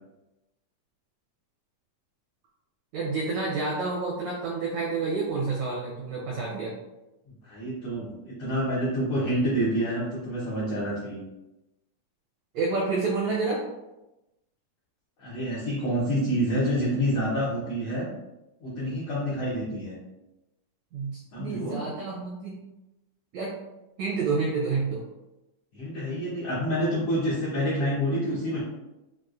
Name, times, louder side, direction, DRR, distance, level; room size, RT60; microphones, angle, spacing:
voice 1, 2.9-6.7 12.5-13.6 20.9-22.6 23.3-23.6 24.0-25.0, right 4 dB, 85° right, -3 dB, 1.5 m, -29 dB
voice 2, 7.4-11.2 15.2-18.1 18.6-19.9 21.3-21.8 25.7-28.6, equal, 80° left, -8 dB, 1.4 m, -28 dB
6.2 x 2.3 x 2.4 m, 0.98 s
omnidirectional pair, 3.9 m